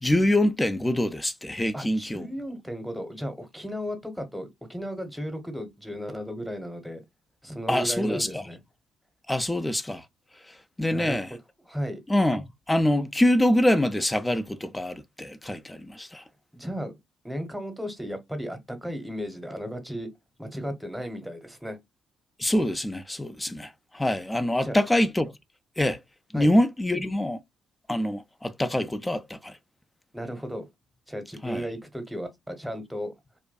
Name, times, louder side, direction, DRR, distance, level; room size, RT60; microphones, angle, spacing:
voice 1, 0.0-2.3 7.7-8.5 9.3-10.0 10.5-11.3 12.1-16.2 22.4-25.3 25.8-26.0 26.3-27.4 27.9-29.6 31.4-31.7, left 1 dB, 15° left, 0.4 m, -25 dB
voice 2, 1.7-7.0 7.4-8.6 10.9-11.3 11.7-12.0 16.5-17.0 17.2-20.1 20.4-21.8 24.6-24.8 26.3-26.6 30.1-30.6 31.1-33.1, equal, 5° right, 1.0 m, -35 dB
2.5 x 2.3 x 2.3 m
hypercardioid pair, 45°, 0 cm